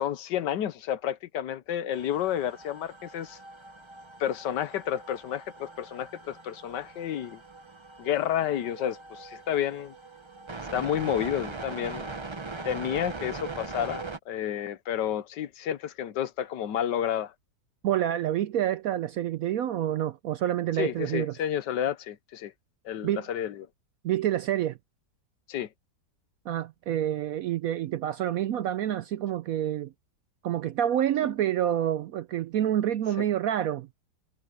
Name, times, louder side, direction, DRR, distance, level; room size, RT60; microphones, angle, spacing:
voice 1, 0.0-3.4 4.2-7.4 8.0-9.9 10.7-12.1 12.6-17.3 20.8-22.5 22.8-23.6 25.5-25.7, left 10 dB, 75° left, 1.5 m, -30 dB
sound 1, 1.9-14.2, right 3 dB, 25° right, 0.7 m, -41 dB
voice 2, 17.8-21.3 23.0-23.3 24.0-24.8 26.5-29.9 30.4-33.9, right 11 dB, 70° right, 0.8 m, -28 dB
omnidirectional pair, 1.9 m